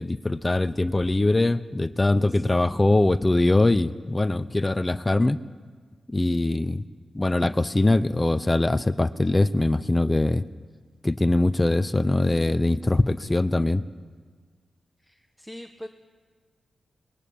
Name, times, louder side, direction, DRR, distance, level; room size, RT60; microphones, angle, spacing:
voice 1, 0.0-5.4 6.1-6.8 7.1-10.4 11.0-13.8, left 2 dB, 20° left, 13 dB, 0.8 m, -22 dB
voice 2, 15.0-15.9, equal, ahead, 6 dB, 1.2 m, -42 dB
24.5 x 21.0 x 8.7 m, 1.5 s
cardioid pair, 75°, 0 cm